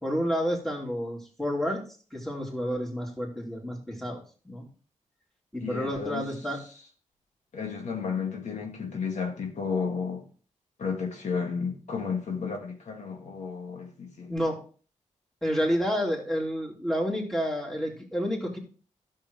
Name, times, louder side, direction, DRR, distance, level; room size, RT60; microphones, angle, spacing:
voice 1, 0.0-1.8 2.1-4.7 5.5-6.6 14.3-14.6 15.4-18.6, equal, ahead, 3.0 m, -30 dB
voice 2, 5.6-6.3 7.5-10.3 10.8-14.5, left 5 dB, 70° left, 2.0 m, -32 dB
12.5 x 6.7 x 3.2 m
cardioid pair, 90°, 13 cm